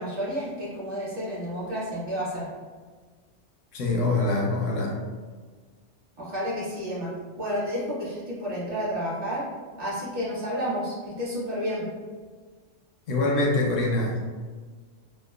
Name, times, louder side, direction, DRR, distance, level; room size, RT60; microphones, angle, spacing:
voice 1, 0.0-2.5 6.2-7.1 7.4-9.5 9.8-11.9, equal, 50° right, -7 dB, 1.0 m, -30 dB
voice 2, 3.7-5.0 13.1-14.2, left 2 dB, 85° left, -2 dB, 1.0 m, -24 dB
2.9 x 2.0 x 2.3 m, 1.5 s
omnidirectional pair, 1.3 m